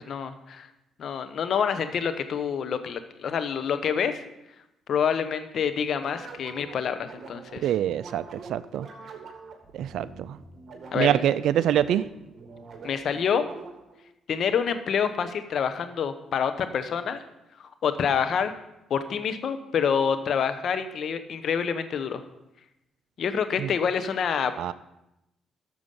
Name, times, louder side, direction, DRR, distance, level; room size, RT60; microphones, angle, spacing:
voice 1, 0.1-0.7 1.0-4.2 4.9-7.7 10.9-11.2 12.8-13.4 14.3-17.2 17.6-18.5 18.9-22.2 23.2-24.5, left 7 dB, 65° left, 10 dB, 1.0 m, -27 dB
sound 1, 5.9-14.0, right 4 dB, 50° right, 2.1 m, -45 dB
voice 2, 7.6-8.9 9.7-10.4 10.9-12.0 23.6-23.7 24.6-24.7, right 10 dB, 75° right, 14 dB, 0.3 m, -25 dB
12.0 x 7.0 x 5.5 m, 0.89 s
supercardioid pair, 70°, 0 cm